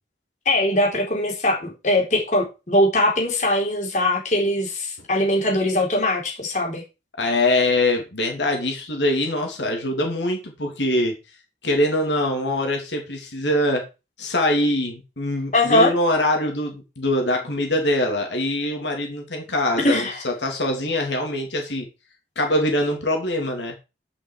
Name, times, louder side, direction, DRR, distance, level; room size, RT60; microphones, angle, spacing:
voice 1, 0.5-6.8 15.5-15.9 19.8-20.2, left 1 dB, 45° left, 0 dB, 4.0 m, -21 dB
voice 2, 7.2-11.1 11.6-13.9 14.2-21.9 22.3-23.7, left 1 dB, 85° left, 2 dB, 3.1 m, -23 dB
11.0 x 6.2 x 4.8 m, 0.28 s
head